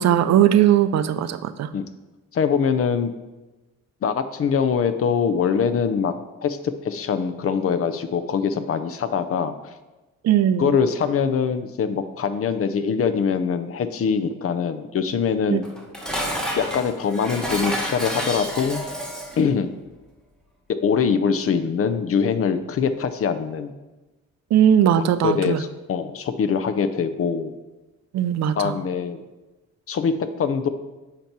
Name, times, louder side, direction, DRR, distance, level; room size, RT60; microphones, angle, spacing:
voice 1, 0.0-1.7 10.2-10.8 15.5-15.6 24.5-25.6 28.1-28.8, right 10 dB, 60° right, 12 dB, 0.5 m, -19 dB
voice 2, 2.3-3.1 4.0-6.1 6.4-9.5 10.6-15.6 16.6-18.8 19.4-19.7 20.7-23.7 25.2-27.5 28.6-29.2 29.9-30.7, left 6 dB, 50° left, 11 dB, 0.6 m, -23 dB
Dishes pots and pans, 15.6-19.5, equal, ahead, 1.2 m, -29 dB
8.3 x 3.0 x 5.9 m, 1.1 s
cardioid pair, 90°, 30 cm